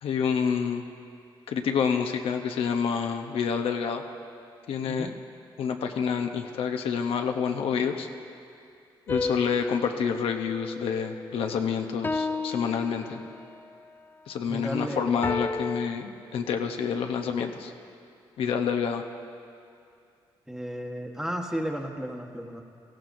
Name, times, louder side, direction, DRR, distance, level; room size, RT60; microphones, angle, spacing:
voice 1, 0.0-0.8 1.5-4.0 4.7-5.1 5.6-8.1 9.1-13.2 14.3-17.7 18.4-19.0, left 6 dB, 80° left, 5 dB, 0.7 m, -28 dB
sound 1, 9.1-11.5 12.0-13.6 15.2-15.9, left 3 dB, 20° left, 0.5 m, -33 dB
voice 2, 14.5-15.2 20.5-22.6, equal, 5° right, 2 dB, 1.2 m, -33 dB
16.5 x 15.5 x 2.6 m, 2.5 s
cardioid pair, 70°, 9 cm